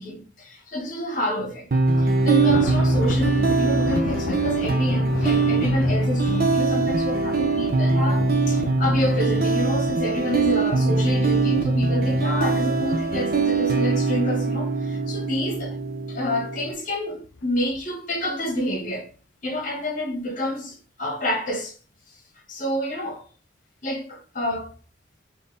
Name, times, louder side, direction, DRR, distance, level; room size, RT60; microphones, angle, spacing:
voice 1, 0.0-1.7 2.0-15.8 16.1-19.1 19.4-21.7 22.5-23.2 23.8-24.7, left 1 dB, 45° left, 1.3 m, -28 dB
sound 1, 1.7-16.7, right 3 dB, 50° right, 0.6 m, -22 dB
Thunder, 1.9-15.2 15.6-15.9 16.3-16.4 17.2-17.8, left 4 dB, 80° left, 0.4 m, -35 dB
4.3 x 2.8 x 3.3 m
head